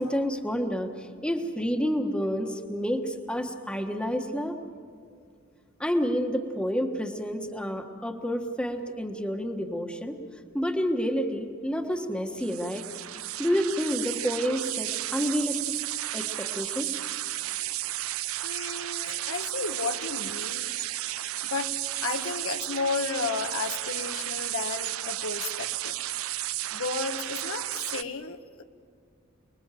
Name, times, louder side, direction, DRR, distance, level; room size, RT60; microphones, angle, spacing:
voice 1, 0.0-4.6 5.8-10.2 10.5-12.9 13.4-15.8 16.1-17.0, equal, 5° left, 4 dB, 1.4 m, -29 dB
sound 1, 12.4-28.0, right 15 dB, 75° right, 0.6 m, -33 dB
voice 2, 18.4-20.7 21.4-21.7 22.0-26.0 26.7-28.6, left 4 dB, 70° left, 7 dB, 1.2 m, -33 dB
29.5 x 21.0 x 7.6 m, 2.2 s
head